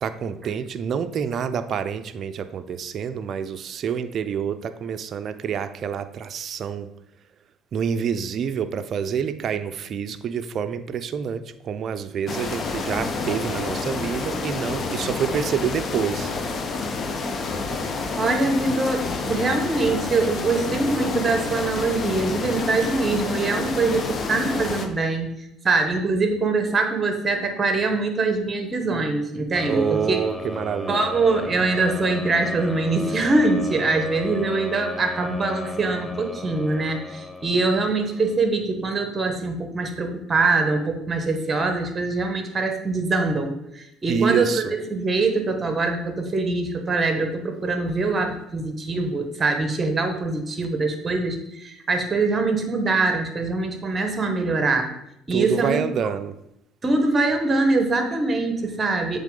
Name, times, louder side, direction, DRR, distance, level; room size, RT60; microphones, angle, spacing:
voice 1, 0.0-6.9 7.7-16.3 29.7-31.0 44.1-44.7 55.3-56.4, right 7 dB, 55° right, 11 dB, 0.4 m, -27 dB
sound 1, 12.3-24.9, left 4 dB, 45° left, 0.8 m, -28 dB
voice 2, 18.2-25.3 25.6-30.2 30.9-54.9 55.3-55.8 56.8-59.2, right 3 dB, 30° right, 6 dB, 1.2 m, -23 dB
sound 2, 29.6-38.5, left 3 dB, 15° left, 0.4 m, -35 dB
7.2 x 3.5 x 3.8 m, 0.78 s
supercardioid pair, 75°, 0 cm